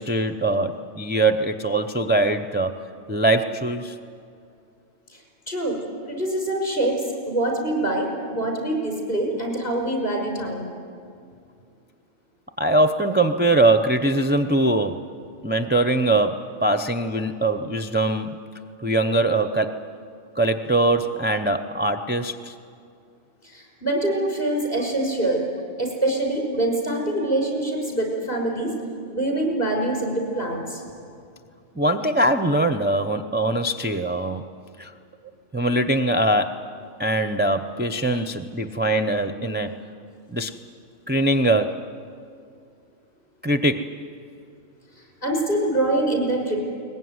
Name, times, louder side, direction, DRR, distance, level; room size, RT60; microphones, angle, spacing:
voice 1, 0.0-2.7 3.1-3.9 12.6-15.1 15.4-18.5 18.8-19.7 20.4-22.5 31.8-34.4 34.8-34.9 35.5-36.6 37.0-39.8 40.3-40.5 41.1-41.8 43.4-44.0, right 2 dB, 10° right, 5 dB, 0.5 m, -22 dB
voice 2, 5.5-5.8 6.1-10.7 23.4-25.4 25.8-28.8 29.1-30.8 38.0-38.2 45.2-46.6, right 1 dB, 45° left, 0 dB, 5.8 m, -25 dB
22.0 x 20.5 x 9.6 m, 2.4 s
omnidirectional pair, 1.3 m